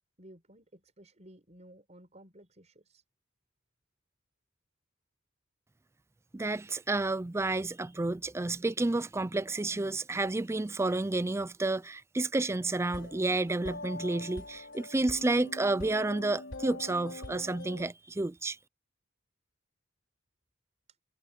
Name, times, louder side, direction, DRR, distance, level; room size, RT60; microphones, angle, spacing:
voice 1, 0.2-3.0, right 1 dB, 35° right, 6.2 m, -55 dB
voice 2, 6.3-18.6, right 2 dB, 15° right, 0.4 m, -30 dB
sound 1, 12.8-17.9, left 2 dB, 65° left, 3.9 m, -44 dB
head